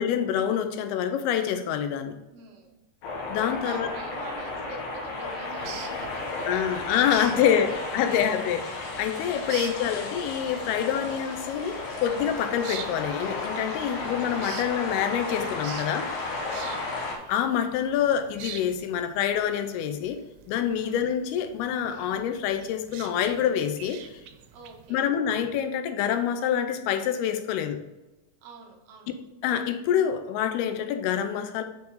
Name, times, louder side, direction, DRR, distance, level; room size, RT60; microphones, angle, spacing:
voice 1, 0.0-2.2 3.3-3.9 6.5-8.7 9.0-16.1 17.3-20.2 20.5-24.2 24.9-27.8 29.4-31.6, left 9 dB, 90° left, 9 dB, 2.6 m, -26 dB
voice 2, 2.3-2.8 3.6-8.2 16.6-17.0 20.8-21.0 24.5-25.0 28.4-29.1, right 4 dB, 70° right, 1 dB, 1.9 m, -45 dB
sound 1, 3.0-17.2, left 3 dB, 65° left, 1.7 m, -34 dB
sound 2, 5.5-24.9, right 9 dB, 90° right, 2.6 m, -46 dB
6.6 x 4.6 x 3.9 m, 1.0 s
omnidirectional pair, 4.4 m